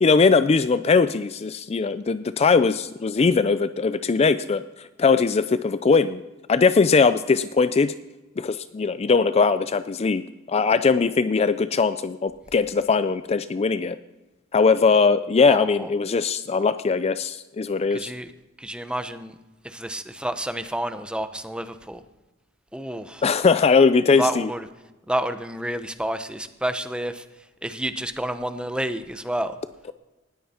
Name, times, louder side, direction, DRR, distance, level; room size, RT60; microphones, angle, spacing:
voice 1, 0.0-6.2 6.5-7.9 8.4-10.2 10.5-14.0 14.5-18.1 23.2-24.5, left 4 dB, 30° left, 13 dB, 0.4 m, -20 dB
voice 2, 15.5-15.9 17.9-18.3 18.6-19.4 19.6-22.0 22.7-23.3 24.1-24.7 25.1-27.2 27.6-29.6, right 1 dB, 5° right, 10 dB, 0.8 m, -29 dB
19.0 x 13.5 x 4.4 m, 1.1 s
head